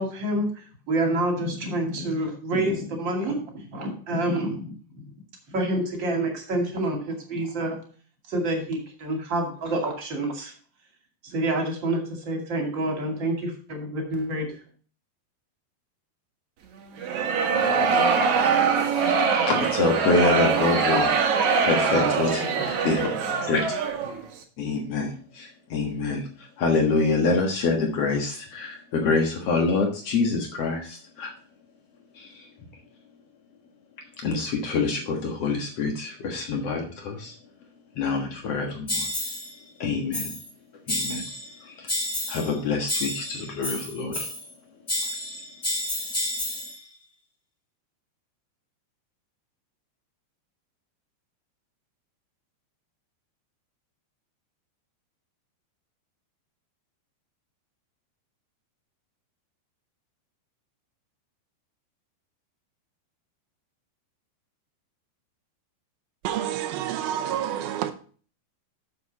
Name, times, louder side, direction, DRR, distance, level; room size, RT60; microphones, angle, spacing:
voice 1, 0.0-4.7 5.5-7.8 8.3-10.5 11.2-14.5 21.9-22.1 22.4-22.7, right 1 dB, 35° right, 3 dB, 2.0 m, -28 dB
sound 1, 17.0-24.2, right 5 dB, 60° right, 2.0 m, -23 dB
voice 2, 19.1-23.1 23.4-23.7 24.6-31.3 32.1-32.5 34.2-37.3 37.9-39.1 39.8-40.3 40.9-41.2 41.6-41.9 42.3-44.3, left 4 dB, 80° left, 2 dB, 1.3 m, -26 dB
sound 2, 38.9-39.5 40.1-40.5 40.9-41.5 41.9-42.5 42.9-44.5 44.9-46.8, left 1 dB, 55° left, 0.4 m, -30 dB
voice 3, 66.2-67.9, right 11 dB, 75° right, 8 dB, 2.2 m, -28 dB
9.4 x 7.0 x 4.0 m, 0.42 s
omnidirectional pair, 5.3 m